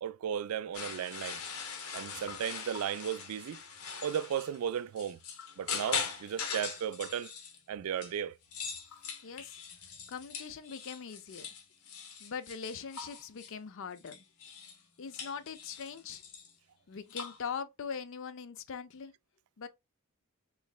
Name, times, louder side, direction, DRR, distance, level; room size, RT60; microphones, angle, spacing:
voice 1, 0.0-1.4 1.9-3.6 4.0-5.2 5.6-7.3 7.7-8.4, right 9 dB, 75° right, 0.3 m, -35 dB
sound 1, 0.7-8.1 8.4-13.5 14.0-14.8 15.1-16.5 17.1-17.4, left 6 dB, 80° left, 0.9 m, -41 dB
voice 2, 9.2-9.6 10.1-11.5 12.2-14.2 15.0-16.2 16.9-19.1 19.6-19.7, left 6 dB, 60° left, 0.5 m, -41 dB
3.8 x 3.1 x 2.3 m
head